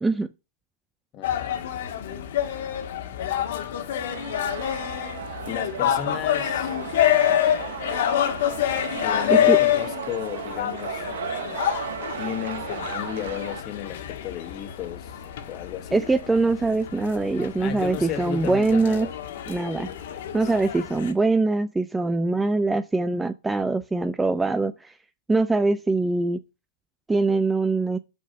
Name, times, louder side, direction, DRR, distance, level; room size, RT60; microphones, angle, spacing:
voice 1, 1.1-1.7 5.5-6.8 9.0-11.1 12.2-15.2 15.5-16.0 17.6-19.1 20.4-20.5, left 10 dB, 30° left, 1.1 m, -34 dB
sound 1, 1.2-21.1, left 11 dB, 60° left, 1.5 m, -27 dB
sound 2, 4.1-13.6, right 9 dB, 70° right, 0.9 m, -36 dB
voice 2, 15.9-19.1 19.5-19.9 20.3-24.9 25.3-26.4 27.1-28.0, right 3 dB, 5° right, 0.4 m, -23 dB
6.3 x 5.8 x 5.5 m
supercardioid pair, 160°, 0 cm